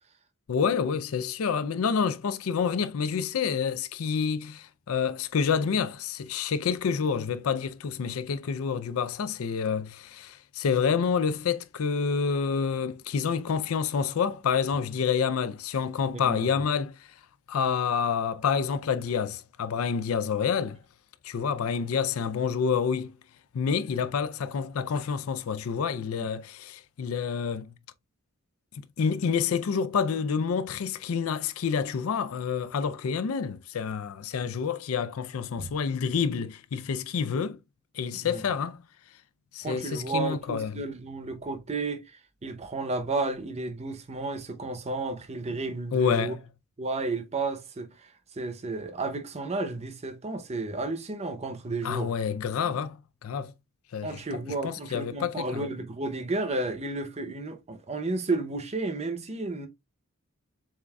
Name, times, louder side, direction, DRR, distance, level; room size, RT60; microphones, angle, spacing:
voice 1, 0.5-17.1 17.5-20.8 21.2-23.1 23.5-27.7 28.8-37.6 37.9-38.8 39.5-40.7 45.9-46.4 51.8-53.5 53.9-54.2 54.6-55.6, left 6 dB, 85° left, 0.4 m, -28 dB
voice 2, 16.1-16.5 26.2-26.3 35.6-35.7 38.1-38.4 39.6-46.3 46.8-52.1 52.6-52.7 54.0-59.7, right 3 dB, 30° right, 0.7 m, -32 dB
7.2 x 2.5 x 2.2 m
head